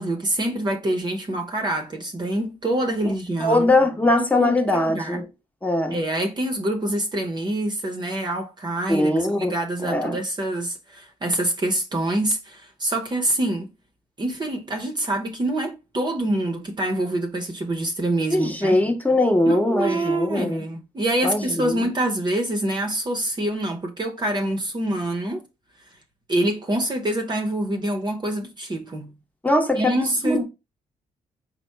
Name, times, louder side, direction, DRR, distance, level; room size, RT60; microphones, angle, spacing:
voice 1, 0.0-3.7 4.3-5.2 5.9-9.1 9.4-13.7 14.2-18.8 19.5-25.4 26.3-29.1 29.7-30.4, right 1 dB, 30° right, 0.8 m, -26 dB
voice 2, 3.4-5.2 5.6-6.0 8.9-9.5 9.8-10.2 18.3-20.7 21.2-21.9 29.4-30.4, left 1 dB, 10° left, 1.0 m, -21 dB
4.1 x 2.1 x 4.5 m
cardioid pair, 80°, 14 cm